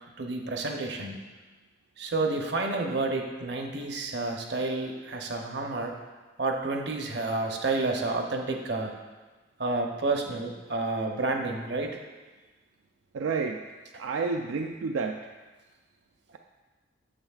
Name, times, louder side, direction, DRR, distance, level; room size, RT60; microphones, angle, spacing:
voice 1, 0.2-1.2 2.0-5.9 6.4-8.9 9.6-12.0, right 3 dB, 55° right, 2 dB, 0.8 m, -30 dB
voice 2, 13.1-13.6 14.0-15.2, right 4 dB, 80° right, 3 dB, 0.4 m, -30 dB
8.8 x 7.1 x 2.4 m, 1.3 s
head